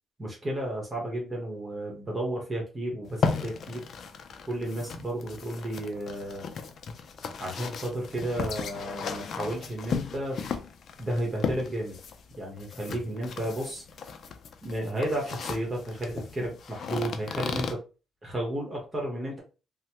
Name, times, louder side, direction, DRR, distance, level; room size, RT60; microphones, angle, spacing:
voice 1, 0.2-3.8 4.5-6.5 7.4-10.4 11.0-12.0 12.4-13.8 14.6-17.8 18.2-19.4, right 1 dB, 25° right, -1 dB, 1.1 m, -33 dB
sound 1, 3.0-17.7, left 5 dB, 60° left, 0.4 m, -36 dB
3.0 x 2.1 x 2.9 m, 0.32 s
cardioid pair, 90°, 0 cm